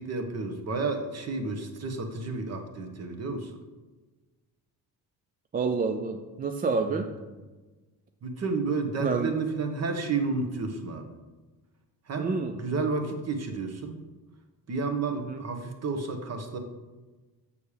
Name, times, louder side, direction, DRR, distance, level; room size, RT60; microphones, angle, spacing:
voice 1, 0.0-3.5 6.8-7.0 8.2-11.0 12.1-14.0 14.7-16.6, right 3 dB, 40° right, 6 dB, 1.2 m, -31 dB
voice 2, 5.5-7.1 9.0-9.3 12.2-12.5 15.1-15.4, right 4 dB, 25° right, 6 dB, 0.4 m, -28 dB
7.1 x 6.6 x 5.0 m, 1.2 s
cardioid pair, 145°, 40 cm